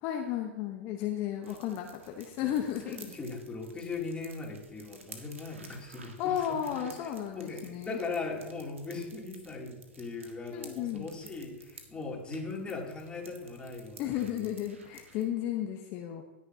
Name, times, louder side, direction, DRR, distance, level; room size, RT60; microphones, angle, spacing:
voice 1, 0.0-3.0 6.2-8.0 10.5-11.1 14.0-16.2, left 10 dB, 40° left, 3 dB, 0.9 m, -33 dB
sound 1, 1.4-15.3, right 3 dB, 85° right, 1.6 m, -54 dB
voice 2, 2.8-6.6 6.8-6.9 7.3-14.5, left 3 dB, 15° left, -2 dB, 2.8 m, -39 dB
16.0 x 10.0 x 2.8 m, 1.2 s
hypercardioid pair, 100°, 7 cm